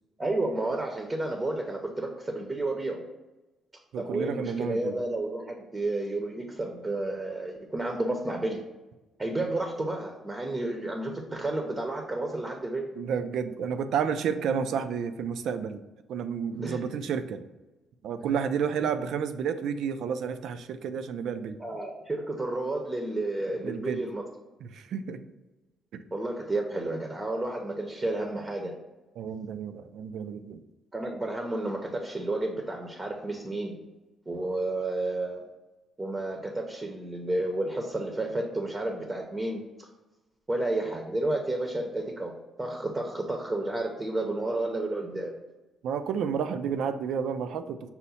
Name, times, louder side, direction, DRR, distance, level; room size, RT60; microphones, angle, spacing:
voice 1, 0.2-3.0 4.0-8.6 9.2-12.8 16.6-16.9 21.6-24.2 26.1-28.7 30.9-33.8 34.3-35.4 36.0-39.9 40.5-42.3 42.6-45.3, right 2 dB, 25° right, 2 dB, 0.6 m, -31 dB
voice 2, 3.9-5.0 13.0-15.8 16.1-17.4 18.0-21.6 23.6-24.0 24.6-25.2 25.9-26.0 29.2-30.6 45.8-47.9, right 7 dB, 75° right, 10 dB, 0.3 m, -31 dB
5.6 x 2.1 x 4.1 m, 1.1 s
cardioid pair, 90°, 0 cm